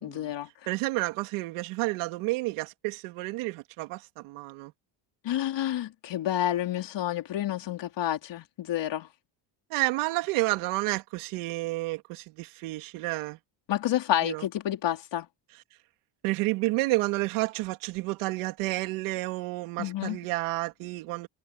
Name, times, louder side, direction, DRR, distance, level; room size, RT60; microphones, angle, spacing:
voice 1, 0.0-0.5 5.2-9.1 13.7-15.3 19.8-20.2, left 12 dB, 60° left, 4.2 m, -29 dB
voice 2, 0.7-4.7 9.7-13.4 14.2-14.4 16.2-21.3, right 21 dB, 90° right, 2.6 m, -30 dB
cardioid pair, 100°, 49 cm